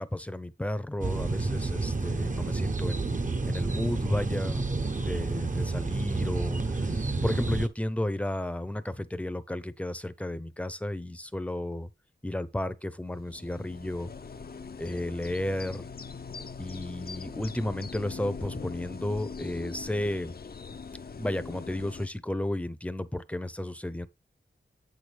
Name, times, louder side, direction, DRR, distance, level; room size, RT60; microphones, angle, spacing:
voice 1, 0.0-4.7 5.0-11.9 12.2-14.1 14.8-15.9 16.6-20.3 21.2-24.1, left 1 dB, 5° left, 0.7 m, -33 dB
sound 1, 1.0-7.7, right 3 dB, 40° right, 0.9 m, -29 dB
sound 2, 13.1-22.1, left 5 dB, 50° left, 0.6 m, -41 dB
7.9 x 6.3 x 3.4 m
cardioid pair, 45°, 20 cm